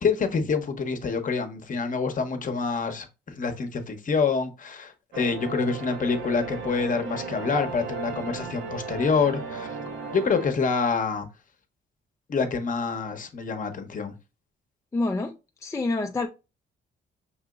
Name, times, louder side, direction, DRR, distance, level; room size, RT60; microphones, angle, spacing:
voice 1, 0.0-9.7 10.1-11.3 12.3-14.1, left 5 dB, 40° left, 0.8 m, -26 dB
sound 1, 5.1-10.5, right 5 dB, 70° right, 0.8 m, -36 dB
voice 2, 14.9-15.3 15.6-16.3, left 2 dB, 15° left, 0.4 m, -27 dB
5.6 x 2.8 x 2.3 m
cardioid pair, 90°, 20 cm